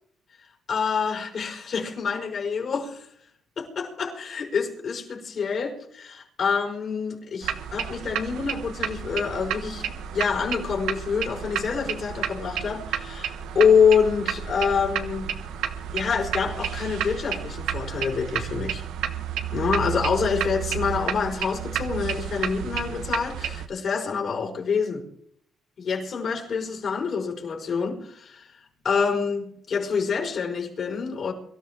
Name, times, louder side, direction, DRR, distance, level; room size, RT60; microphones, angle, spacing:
voice 1, 0.7-3.1 3.6-15.3 15.9-18.8 19.5-25.0 25.8-31.3, left 6 dB, 55° left, 4.9 m, -26 dB
sound 1, 7.4-23.7, right 9 dB, 85° right, 1.2 m, -31 dB
23.5 x 13.5 x 3.7 m
cardioid pair, 90°, 0 cm